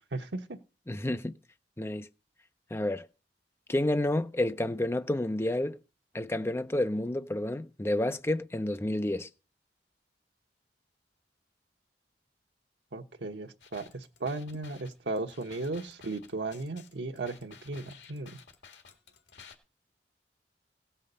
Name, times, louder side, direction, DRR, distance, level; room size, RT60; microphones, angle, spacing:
voice 1, 0.1-0.6 12.9-18.4, right 2 dB, 80° right, 1.1 m, -36 dB
voice 2, 0.9-1.3 1.8-2.1 2.7-3.1 3.7-5.8 6.1-9.3, left 1 dB, 15° left, 0.6 m, -30 dB
sound 1, 13.6-19.5, left 6 dB, 80° left, 1.8 m, -54 dB
16.5 x 5.6 x 6.7 m
head